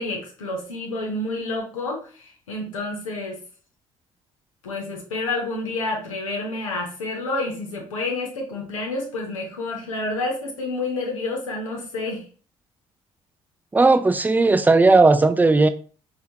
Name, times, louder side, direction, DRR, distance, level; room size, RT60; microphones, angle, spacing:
voice 1, 0.0-3.4 4.6-12.2, left 2 dB, 85° left, 0.7 m, -29 dB
voice 2, 13.7-15.7, right 3 dB, 10° right, 0.3 m, -16 dB
4.3 x 2.3 x 2.6 m
figure-of-eight pair, 45°, 17 cm